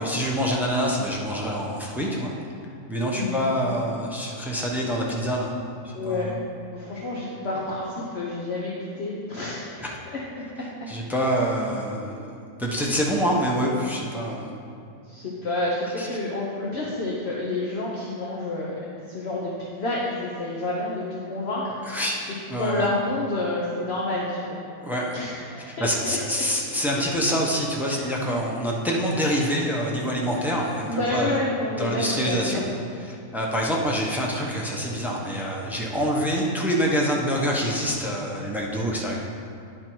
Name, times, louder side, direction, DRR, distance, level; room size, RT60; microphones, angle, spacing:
voice 1, 0.0-2.3 2.9-5.5 5.8-6.4 9.8-9.9 10.9-14.5 16.0-16.1 21.9-22.2 22.5-22.9 24.8-25.2 25.8-31.4 31.8-32.6 33.1-39.2, equal, ahead, -2 dB, 0.5 m, -26 dB
voice 2, 5.9-6.3 6.7-10.2 12.8-13.0 15.1-18.7 19.0-21.7 22.6-24.6 25.1-26.2 27.9-28.0 30.8-32.7, left 2 dB, 50° left, -5 dB, 1.0 m, -29 dB
10.0 x 4.5 x 4.5 m, 2.5 s
omnidirectional pair, 1.5 m